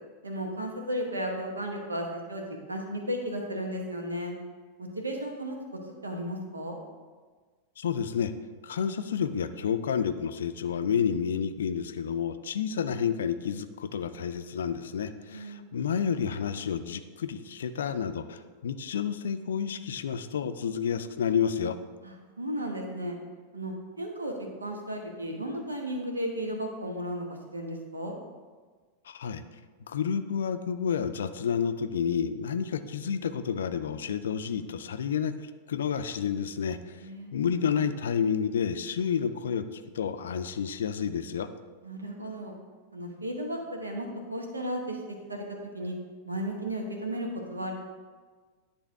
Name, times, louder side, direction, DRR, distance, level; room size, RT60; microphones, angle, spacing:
voice 1, 0.2-4.4 4.8-5.6 5.8-6.8 15.3-15.6 22.0-23.2 23.5-24.3 24.6-28.2 37.0-37.3 41.8-42.6 42.9-45.0 45.3-45.4 45.7-45.9 46.3-47.7, equal, 80° right, 2 dB, 1.1 m, -34 dB
voice 2, 7.8-8.3 8.6-21.8 29.1-29.4 29.9-35.4 35.7-41.5, left 7 dB, 65° left, 10 dB, 0.4 m, -30 dB
10.0 x 3.4 x 4.6 m, 1.4 s
figure-of-eight pair, 90°, 0 cm